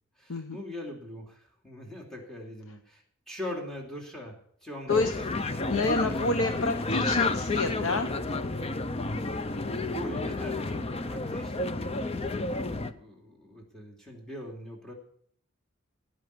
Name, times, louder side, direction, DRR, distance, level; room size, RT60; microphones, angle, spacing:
voice 1, 0.2-4.4 4.6-6.2 9.5-14.9, left 1 dB, 5° left, -1 dB, 2.8 m, -42 dB
sound 1, 4.9-12.9, left 2 dB, 30° left, 0.6 m, -31 dB
voice 2, 5.5-8.3, left 3 dB, 90° left, 7 dB, 1.0 m, -28 dB
17.0 x 5.7 x 9.5 m, 0.64 s
head